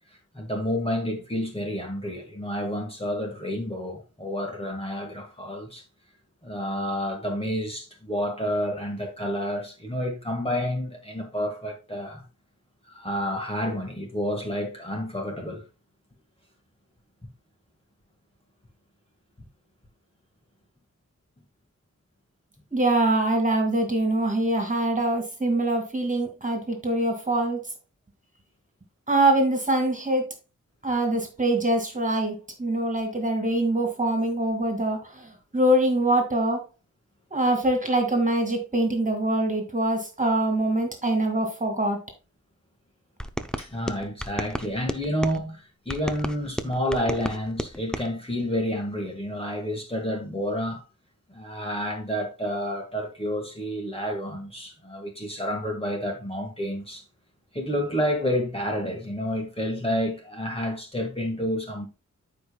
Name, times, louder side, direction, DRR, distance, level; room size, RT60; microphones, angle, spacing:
voice 1, 0.3-5.8 6.4-12.2 12.9-15.6 43.6-50.9 51.3-57.0 57.5-61.9, equal, 20° left, 1.7 m, -29 dB
voice 2, 22.7-27.6 29.1-30.3 30.8-36.6 37.3-42.0, right 1 dB, 25° right, 2.2 m, -24 dB
sound 1, 43.2-45.4 45.9-48.1, equal, ahead, 0.7 m, -33 dB
13.5 x 5.2 x 2.3 m
wide cardioid pair, 110°, 31 cm